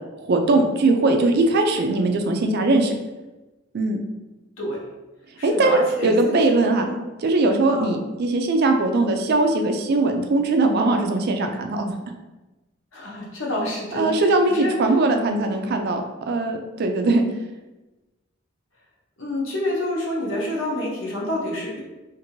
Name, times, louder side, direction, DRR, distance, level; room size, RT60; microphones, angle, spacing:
voice 1, 0.2-2.9 3.7-4.0 5.4-6.8 7.2-11.9 13.9-17.2, right 2 dB, 50° right, 4 dB, 0.3 m, -20 dB
voice 2, 5.4-7.0 7.7-8.0 12.9-14.8 19.2-21.8, left 1 dB, 70° left, -4 dB, 0.8 m, -28 dB
2.6 x 2.5 x 2.9 m, 1.1 s
head